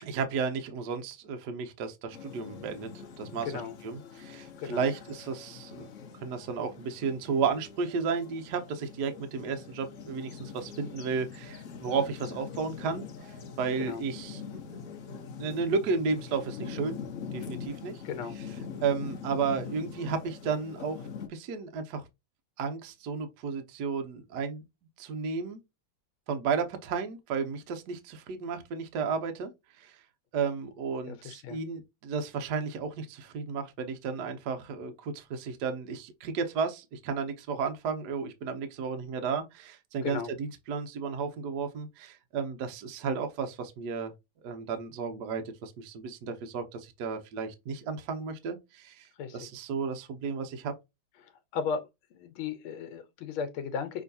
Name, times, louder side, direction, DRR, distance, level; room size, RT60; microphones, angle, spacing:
voice 1, 0.0-2.9 3.2-3.5 3.8-5.9 6.2-14.4 15.4-17.0 17.3-18.0 18.8-22.0 22.6-24.6 25.0-25.6 26.3-29.5 29.8-30.0 30.3-44.1 44.4-49.1 49.3-50.7, right 5 dB, 65° right, 1.2 m, -33 dB
sound 1, 2.1-21.3, left 6 dB, 55° left, 0.8 m, -43 dB
voice 2, 3.4-3.8 4.6-4.9 13.8-14.0 18.0-18.4 31.1-31.6 40.0-40.3 49.2-49.5 51.2-51.8 52.1-54.0, left 6 dB, 80° left, 1.6 m, -35 dB
6.0 x 3.1 x 2.6 m
omnidirectional pair, 2.3 m